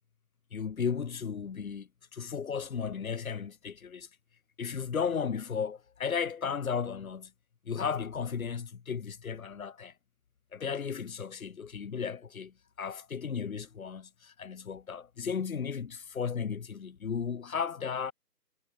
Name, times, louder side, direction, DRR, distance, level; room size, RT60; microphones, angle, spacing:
voice 1, 0.5-4.1 4.6-7.3 7.7-9.9 10.5-18.1, left 6 dB, 60° left, 1.9 m, -35 dB
hypercardioid pair, 160°, 48 cm